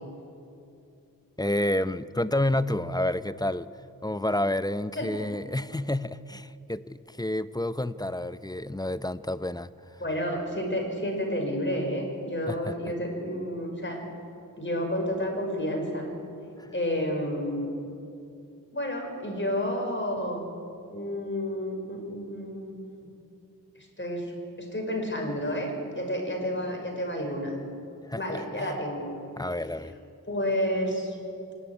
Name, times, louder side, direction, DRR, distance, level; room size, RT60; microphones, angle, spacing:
voice 1, 1.4-3.7 4.0-9.7 12.5-12.7 16.6-16.7 28.1-28.8 29.4-30.0, left 1 dB, 10° left, 14 dB, 0.7 m, -29 dB
voice 2, 10.0-14.0 14.6-16.1 16.7-17.7 18.7-20.5 20.9-23.1 24.0-24.2 24.6-25.7 26.0-27.5 28.1-29.1 30.3-31.2, equal, 35° left, 1 dB, 5.8 m, -30 dB
25.0 x 12.0 x 9.8 m, 2.6 s
cardioid pair, 40°, 35 cm